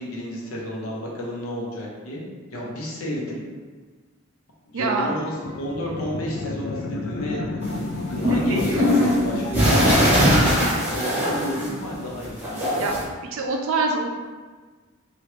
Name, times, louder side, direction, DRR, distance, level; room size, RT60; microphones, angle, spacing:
voice 1, 0.0-2.2 2.5-3.4 4.7-12.8, equal, 80° left, -3 dB, 0.8 m, -31 dB
voice 2, 4.7-5.2 8.3-8.8 9.3-9.8 12.8-13.0 13.3-14.1, right 3 dB, 70° right, 2 dB, 0.4 m, -26 dB
sound 1, 5.1-9.9, left 3 dB, 60° left, 0.3 m, -31 dB
sound 2, 7.6-11.9 12.2-13.0, equal, 10° right, 0.7 m, -21 dB
2.9 x 2.4 x 3.2 m, 1.4 s
head